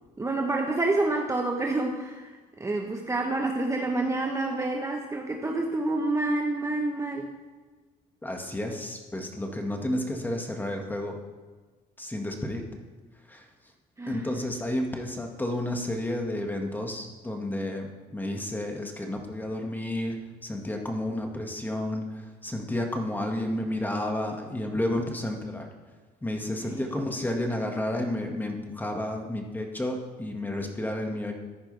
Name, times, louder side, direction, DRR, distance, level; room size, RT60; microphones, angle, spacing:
voice 1, 0.2-7.3 14.0-14.4 26.7-26.8, right 2 dB, 15° right, 2 dB, 1.0 m, -28 dB
voice 2, 8.2-11.2 12.0-12.6 13.3-13.5 14.1-25.7 26.2-31.3, left 1 dB, 10° left, 2 dB, 1.8 m, -31 dB
14.5 x 10.0 x 3.4 m, 1.4 s
cardioid pair, 110°, 17 cm